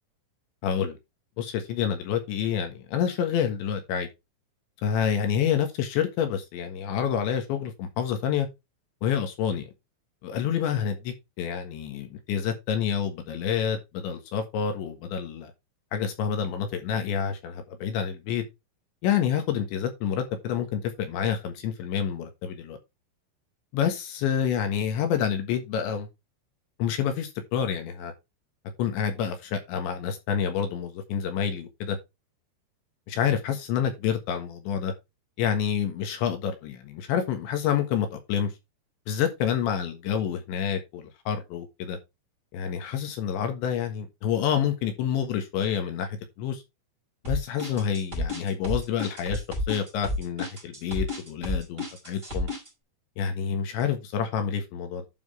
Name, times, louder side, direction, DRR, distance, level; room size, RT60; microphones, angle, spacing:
voice 1, 0.6-1.0 1.4-4.1 4.8-8.5 9.0-9.7 10.2-15.5 15.9-18.4 19.0-22.8 23.7-26.1 26.8-28.1 28.8-32.0 33.1-34.9 35.4-38.5 39.1-42.0 42.5-46.6 47.3-52.5 53.2-55.1, left 8 dB, 80° left, 3.7 m, -28 dB
sound 1, 47.2-52.7, left 1 dB, 10° right, 4.3 m, -31 dB
11.5 x 6.0 x 3.3 m
omnidirectional pair, 5.3 m